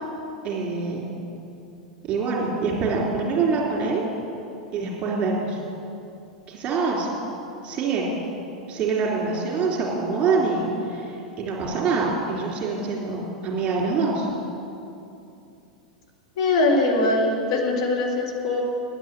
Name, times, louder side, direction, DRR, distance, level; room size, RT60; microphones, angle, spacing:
voice 1, 0.4-1.1 2.1-4.0 4.7-5.6 6.5-7.1 7.6-8.2 8.7-14.3, right 4 dB, 30° right, -2 dB, 3.0 m, -25 dB
voice 2, 16.4-18.6, left 2 dB, 55° left, -1 dB, 1.9 m, -22 dB
9.7 x 9.1 x 8.1 m, 2.7 s
figure-of-eight pair, 90°, 4 cm